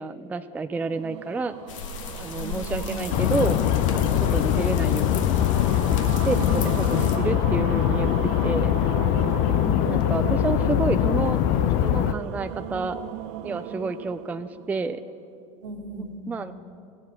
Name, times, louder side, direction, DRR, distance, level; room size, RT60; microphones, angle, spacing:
voice 1, 0.0-1.5 2.2-3.6 3.9-5.4 6.0-8.7 9.9-11.4 11.8-13.0 13.4-15.0 16.3-16.5, right 3 dB, 10° right, 11 dB, 0.3 m, -29 dB
sound 1, 0.7-15.2, right 11 dB, 60° right, 0.5 m, -36 dB
sound 2, 1.7-7.2, left 5 dB, 70° left, 1.1 m, -36 dB
voice 2, 2.4-3.2 6.2-7.1 9.5-10.3 15.6-16.4, right 2 dB, 75° right, 2 dB, 1.9 m, -35 dB
sound 3, 3.1-12.2, left 13 dB, 55° left, 0.4 m, -22 dB
15.5 x 7.4 x 5.8 m, 2.6 s
hypercardioid pair, 85°, 17 cm